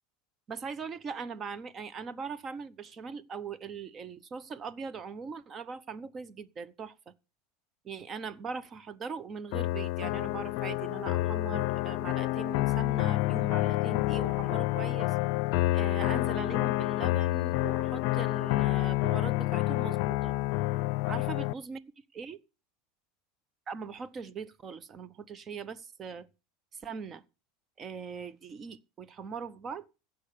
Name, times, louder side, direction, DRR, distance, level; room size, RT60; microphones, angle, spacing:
voice 1, 0.5-7.1 7.8-15.2 15.7-20.3 21.1-21.8 22.1-22.4 23.7-26.3 26.7-27.2 27.8-29.9, right 5 dB, 30° right, 0.9 m, -40 dB
sound 1, 9.5-21.5, left 18 dB, 65° left, 0.5 m, -28 dB
15.5 x 5.8 x 6.7 m
supercardioid pair, 120°, 0 cm